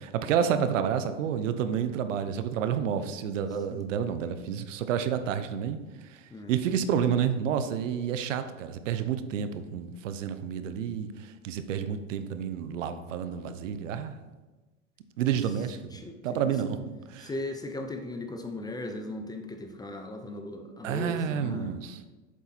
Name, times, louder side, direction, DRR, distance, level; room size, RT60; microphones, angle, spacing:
voice 1, 0.1-5.8 6.1-6.2 6.5-11.1 11.4-14.2 15.2-15.9 16.2-17.3 20.8-22.0, right 8 dB, 80° right, 10 dB, 0.9 m, -29 dB
voice 2, 6.3-6.8 15.2-15.4 15.9-16.5 17.2-21.8, left 2 dB, 10° left, 5 dB, 0.6 m, -38 dB
7.4 x 7.0 x 4.1 m, 1.2 s
supercardioid pair, 125°, 38 cm